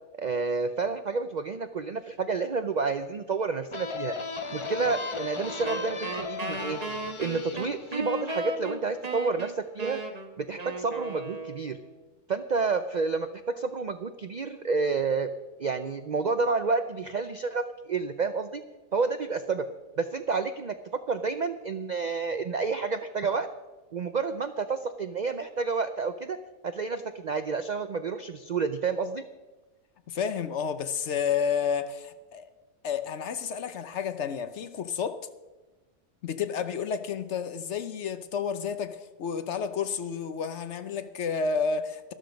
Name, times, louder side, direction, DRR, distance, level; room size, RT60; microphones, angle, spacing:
voice 1, 0.2-4.2 4.5-6.8 7.2-10.0 10.4-11.8 12.3-15.3 15.6-18.6 18.9-19.6 20.0-20.7 21.1-23.5 23.9-26.4 26.6-29.2, right 4 dB, 70° right, 0.4 m, -29 dB
sound 1, 3.7-9.2, left 4 dB, 30° left, 0.6 m, -37 dB
Wind instrument woodwind instrument, 5.6-11.9, right 2 dB, 30° right, 1.1 m, -36 dB
voice 2, 30.1-32.5 32.8-35.2 36.2-42.1, left 6 dB, 60° left, 1.0 m, -31 dB
12.5 x 12.5 x 5.1 m
omnidirectional pair, 1.5 m